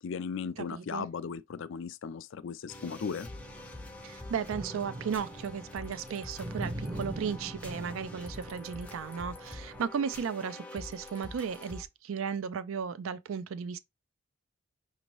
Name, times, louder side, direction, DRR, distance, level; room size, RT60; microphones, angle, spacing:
voice 1, 0.0-3.3, left 6 dB, 60° left, 0.4 m, -37 dB
voice 2, 0.7-1.1 4.0-13.8, right 7 dB, 70° right, 0.4 m, -35 dB
sound 1, 2.7-11.8, left 2 dB, 5° left, 0.5 m, -46 dB
sound 2, 3.3-9.8, right 1 dB, 30° right, 0.7 m, -43 dB
6.0 x 2.7 x 3.0 m
head